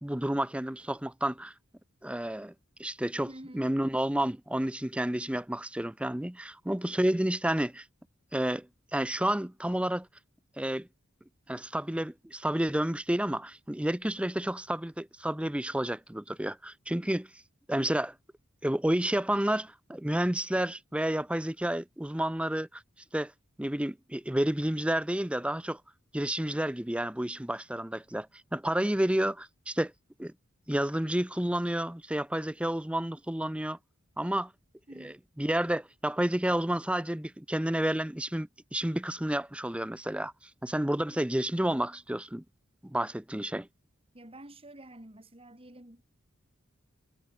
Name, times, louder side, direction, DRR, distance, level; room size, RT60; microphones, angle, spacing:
voice 1, 0.0-1.5 2.0-2.5 2.8-3.3 3.5-7.8 8.3-10.1 10.6-10.9 11.5-17.3 17.7-18.1 18.6-22.8 23.1-23.3 23.6-25.8 26.1-28.3 28.5-29.9 30.2-30.3 30.7-33.8 34.2-34.5 35.0-40.3 40.6-42.4 42.8-43.7, right 1 dB, 5° right, 0.7 m, -30 dB
voice 2, 3.3-3.8 34.9-35.1 44.1-46.0, right 1 dB, 30° right, 4.6 m, -48 dB
head